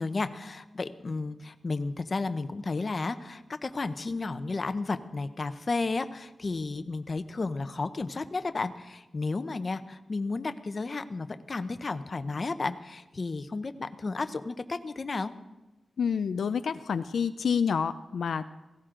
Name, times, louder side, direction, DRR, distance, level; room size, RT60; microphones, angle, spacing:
voice 1, 0.0-15.3, left 3 dB, 40° left, 10 dB, 0.8 m, -33 dB
voice 2, 16.0-18.4, left 6 dB, 85° left, 11 dB, 0.4 m, -28 dB
17.5 x 16.0 x 3.8 m, 1.0 s
wide cardioid pair, 115°, 0 cm